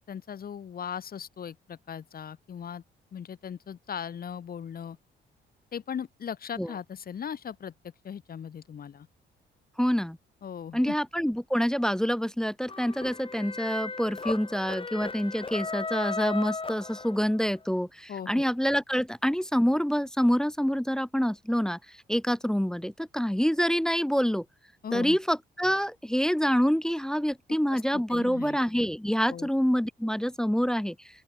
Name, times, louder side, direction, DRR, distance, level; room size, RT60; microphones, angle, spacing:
voice 1, 0.0-2.8 3.1-5.0 5.7-7.7 8.0-9.1 10.4-10.9 18.1-18.5 24.8-25.2 27.7-28.6 29.3-29.5, left 8 dB, 50° left, 1.6 m, -38 dB
voice 2, 9.8-10.2 10.7-21.8 22.1-24.4 24.9-31.0, equal, 5° left, 0.4 m, -26 dB
sound 1, 12.7-17.5, left 4 dB, 25° left, 3.8 m, -36 dB
open air
cardioid pair, 90°, 20 cm